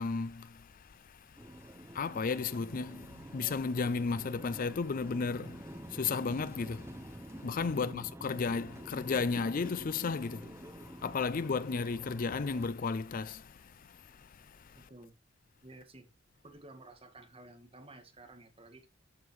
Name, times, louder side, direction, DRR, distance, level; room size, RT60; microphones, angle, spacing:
voice 1, 0.0-14.9, left 4 dB, 45° left, 0.4 m, -35 dB
sound 1, 1.4-12.7, right 1 dB, 15° right, 1.0 m, -48 dB
voice 2, 7.7-8.1 14.7-15.2 15.6-16.1 16.4-18.9, right 2 dB, 30° right, 1.9 m, -52 dB
14.0 x 5.3 x 3.2 m
head